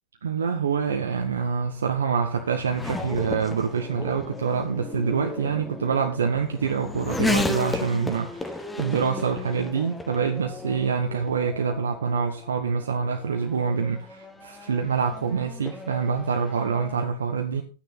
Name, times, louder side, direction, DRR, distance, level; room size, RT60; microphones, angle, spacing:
voice 1, 0.2-17.6, right 6 dB, 70° right, 3 dB, 1.2 m, -26 dB
Race car auto racing / Accelerating revving vroom, 0.9-17.1, left 2 dB, 10° left, 1.2 m, -34 dB
11.5 x 9.3 x 4.1 m, 0.35 s
figure-of-eight pair, 90°, 0 cm